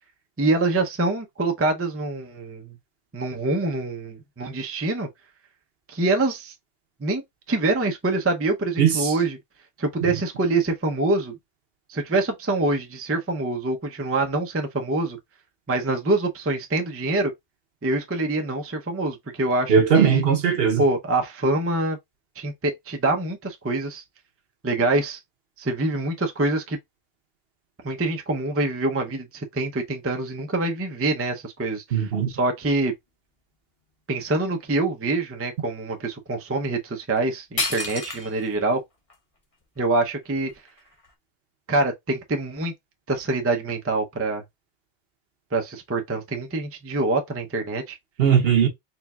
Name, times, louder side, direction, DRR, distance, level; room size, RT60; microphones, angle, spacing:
voice 1, 0.4-2.8 3.1-5.1 5.9-6.5 7.0-7.2 7.5-9.4 9.8-11.3 11.9-15.2 15.7-17.3 17.8-20.2 20.8-22.0 22.4-24.0 24.6-25.2 25.6-26.8 27.8-32.9 34.1-38.8 39.8-40.5 41.7-42.7 43.1-44.4 45.5-48.0, right 2 dB, 20° right, 0.5 m, -25 dB
voice 2, 8.8-9.1 19.7-20.8 31.9-32.3 48.2-48.7, right 7 dB, 60° right, 1.0 m, -19 dB
sound 1, 37.2-37.3 37.6-38.5 39.1-39.2 39.8-41.1, left 3 dB, 35° left, 0.8 m, -31 dB
4.4 x 3.3 x 2.3 m
omnidirectional pair, 1.2 m